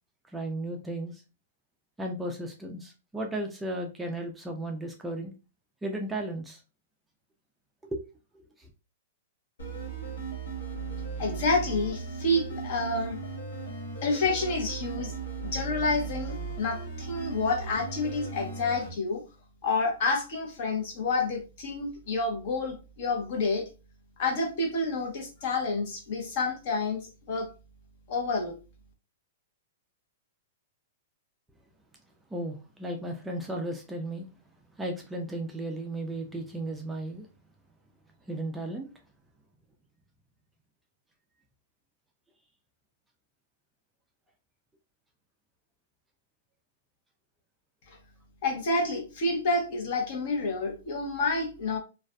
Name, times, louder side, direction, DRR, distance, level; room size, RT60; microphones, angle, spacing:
voice 1, 0.3-1.2 2.0-5.3 5.8-6.6 7.8-8.0 8.3-8.7 32.3-34.3 34.8-37.3 38.3-38.9, right 1 dB, 5° right, 2 dB, 0.3 m, -35 dB
sound 1, 9.6-18.9, right 4 dB, 90° left, 1.0 m, -37 dB
voice 2, 11.2-13.2 14.0-15.1 15.4-19.2 19.6-23.6 24.2-27.5 28.1-28.5 48.4-51.8, left 3 dB, 50° left, 2 dB, 0.9 m, -29 dB
2.4 x 2.3 x 2.2 m, 0.31 s
hypercardioid pair, 155°, 0 cm